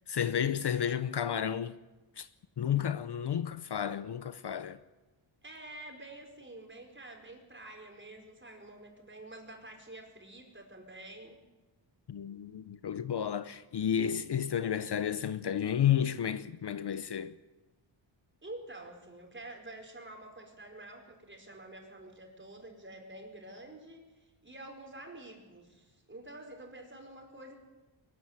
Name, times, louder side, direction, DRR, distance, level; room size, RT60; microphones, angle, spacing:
voice 1, 0.1-1.8 2.2-2.3 2.6-4.8 12.1-17.4, left 9 dB, 55° left, 0.9 m, -31 dB
voice 2, 5.4-11.4 18.4-24.1 24.4-27.6, right 2 dB, 25° right, 4.9 m, -48 dB
22.5 x 14.5 x 9.6 m
wide cardioid pair, 110°, 49 cm